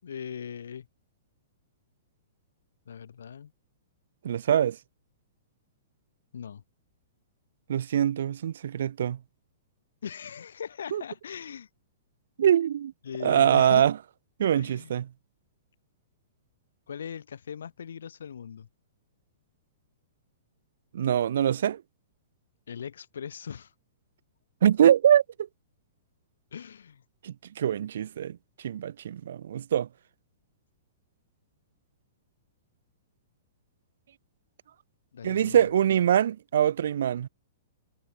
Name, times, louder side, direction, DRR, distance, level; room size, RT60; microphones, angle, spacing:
voice 1, 0.0-0.9 2.9-3.5 6.3-6.6 10.0-11.7 13.0-13.9 14.6-14.9 16.9-18.7 22.7-23.7 26.5-27.0 35.1-35.7, left 7 dB, 90° left, 7.0 m, -39 dB
voice 2, 4.2-4.8 7.7-9.2 10.9-11.0 12.4-12.9 13.2-13.9 14.4-15.1 20.9-21.8 24.6-25.2 27.2-28.4 28.6-29.9 35.2-37.3, right 10 dB, 70° right, 1.6 m, -23 dB
hypercardioid pair, 160°, 0 cm